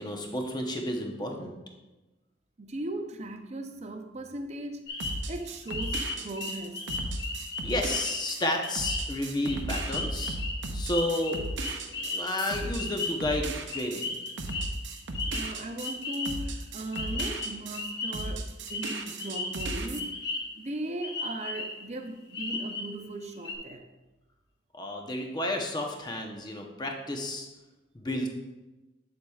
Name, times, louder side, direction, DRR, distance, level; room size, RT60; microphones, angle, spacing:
voice 1, 0.0-1.5 7.6-10.4 10.7-11.4 11.9-14.2 24.7-27.5 27.9-28.3, left 1 dB, 20° left, 0.8 m, -31 dB
voice 2, 2.6-6.9 15.3-20.2 20.6-23.9, right 1 dB, 35° right, 0.6 m, -38 dB
sound 1, 4.9-16.6 16.9-18.3 18.7-20.7 21.0-21.8 22.3-22.9 23.2-23.5, left 3 dB, 60° left, 1.2 m, -36 dB
sound 2, 5.0-17.8 18.1-20.0, right 2 dB, 70° right, 0.7 m, -36 dB
8.4 x 7.3 x 2.4 m
head